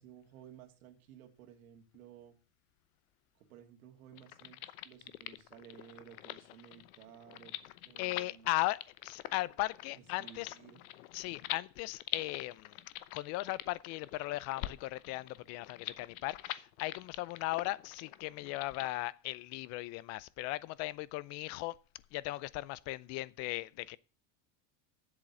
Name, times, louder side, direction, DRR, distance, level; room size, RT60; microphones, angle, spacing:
voice 1, 0.0-2.4 3.4-7.6 7.9-8.5 10.2-10.8, right 9 dB, 90° right, 2.0 m, -55 dB
sound 1, 4.1-18.9, left 15 dB, 90° left, 0.9 m, -45 dB
voice 2, 8.0-10.5 11.1-12.8 13.1-21.8 22.1-24.0, left 18 dB, 40° left, 0.4 m, -37 dB
7.8 x 7.3 x 8.0 m
supercardioid pair, 150°, 41 cm